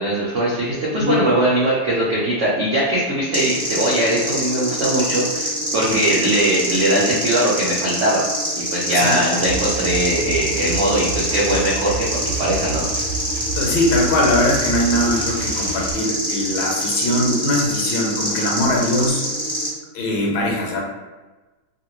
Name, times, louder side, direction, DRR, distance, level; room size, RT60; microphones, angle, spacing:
voice 1, 0.0-8.2 8.5-12.9, right 1 dB, 85° right, -7 dB, 0.6 m, -20 dB
sound 1, 3.3-19.7, equal, 5° left, 0.4 m, -25 dB
sound 2, 9.4-15.9, right 4 dB, 30° right, 1.0 m, -30 dB
voice 2, 13.5-19.2 19.9-20.8, left 1 dB, 80° left, -1 dB, 1.5 m, -21 dB
3.2 x 2.6 x 2.9 m, 1.2 s
omnidirectional pair, 2.2 m